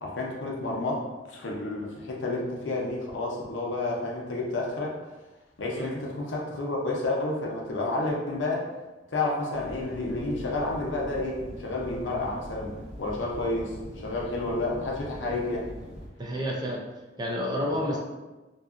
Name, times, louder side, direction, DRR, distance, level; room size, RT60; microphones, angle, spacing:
voice 1, 0.0-5.0 5.6-8.7 9.1-15.7 17.9-18.0, left 2 dB, 85° left, -2 dB, 0.6 m, -30 dB
sound 1, 9.5-16.1, equal, 40° right, 0.8 m, -42 dB
voice 2, 16.2-16.8 17.2-18.0, equal, 20° right, -1 dB, 0.4 m, -29 dB
2.7 x 2.3 x 2.4 m, 1.1 s
head